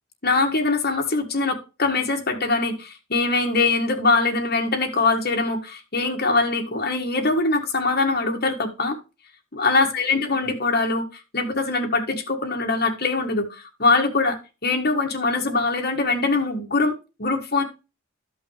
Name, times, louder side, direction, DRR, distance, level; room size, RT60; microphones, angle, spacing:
voice 1, 0.2-9.0 9.5-11.0 11.3-14.4 14.6-16.9 17.2-17.6, left 3 dB, 45° left, 3 dB, 1.7 m, -22 dB
13.0 x 5.6 x 3.2 m, 0.29 s
head